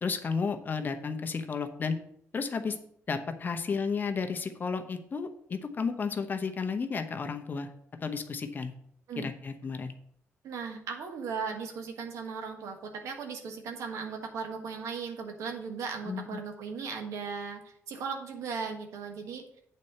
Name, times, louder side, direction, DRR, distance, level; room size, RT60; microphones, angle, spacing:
voice 1, 0.0-2.0 2.3-2.8 3.1-7.7 8.0-8.7 9.2-9.9 16.1-16.4, left 5 dB, 40° left, 6 dB, 0.9 m, -32 dB
voice 2, 10.4-19.4, right 5 dB, 85° right, 4 dB, 1.5 m, -37 dB
8.3 x 4.3 x 6.6 m, 0.68 s
cardioid pair, 115°, 5 cm